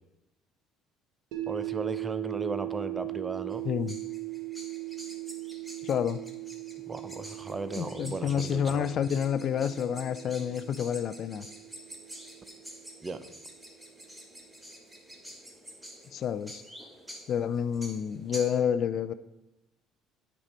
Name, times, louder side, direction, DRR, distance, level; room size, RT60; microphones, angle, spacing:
sound 1, 1.3-13.4, right 22 dB, 80° right, 1.0 m, -39 dB
voice 1, 1.5-3.6 6.9-8.9 13.0-13.2, right 3 dB, 25° right, 11 dB, 0.6 m, -36 dB
sound 2, 3.5-18.6, equal, 10° right, 1.7 m, -48 dB
voice 2, 3.6-4.0 5.8-6.2 7.8-11.5 16.1-16.6 17.3-19.1, left 8 dB, 55° left, 13 dB, 0.4 m, -29 dB
8.8 x 5.3 x 4.3 m, 0.97 s
supercardioid pair, 85°, 0 cm